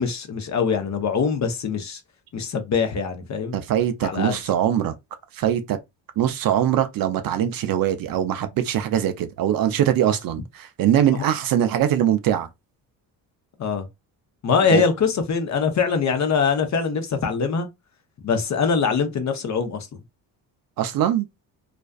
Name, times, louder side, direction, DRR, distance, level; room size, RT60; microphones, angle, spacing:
voice 1, 0.0-2.0 2.3-3.6 4.0-4.4 11.1-11.2 13.6-13.9 14.4-17.7 18.2-19.9, left 5 dB, 40° left, 0.7 m, -23 dB
voice 2, 3.5-4.9 5.3-5.8 6.2-12.5 14.7-14.8 20.8-21.3, right 10 dB, 50° right, 0.5 m, -22 dB
2.4 x 2.3 x 2.2 m
supercardioid pair, 70°, 45 cm